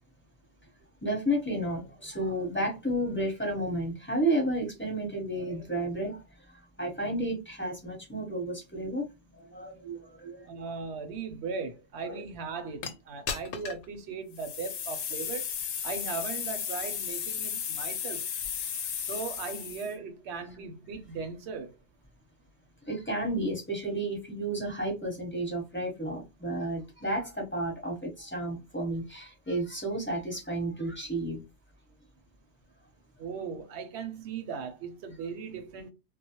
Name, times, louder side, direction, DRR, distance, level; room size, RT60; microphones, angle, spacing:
voice 1, 1.0-6.2 6.8-9.1 9.4-10.5 12.1-12.2 22.9-31.4, right 1 dB, 10° left, 0.8 m, -32 dB
voice 2, 10.4-15.5 15.8-18.3 19.1-21.7 33.2-35.9, right 5 dB, 65° right, 0.8 m, -38 dB
sound 1, 12.8-12.9 13.3-13.8 14.3-19.9, left 8 dB, 90° left, 0.9 m, -34 dB
2.2 x 2.1 x 2.8 m
omnidirectional pair, 1.3 m